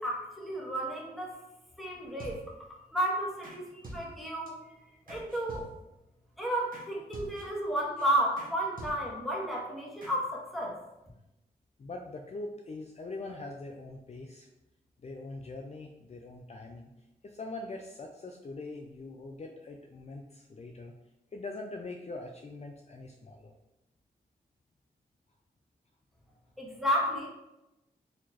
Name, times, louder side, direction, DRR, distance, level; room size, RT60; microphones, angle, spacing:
voice 1, 0.0-1.3 1.8-2.3 2.9-4.5 5.1-5.6 6.4-10.7 26.6-27.3, right 1 dB, ahead, -4 dB, 1.4 m, -32 dB
sound 1, 2.2-2.7 3.4-3.6 3.8-4.5 5.1-6.0 6.7-6.9 7.1-7.7 8.0-8.1 8.4-8.5 8.8-9.3 10.0-10.1, right 1 dB, 55° right, 1.1 m, -46 dB
voice 2, 11.8-14.5 15.0-16.9 17.2-20.9 21.3-23.5, left 2 dB, 40° left, 1 dB, 0.4 m, -42 dB
4.1 x 2.9 x 2.9 m, 0.93 s
cardioid pair, 45°, 17 cm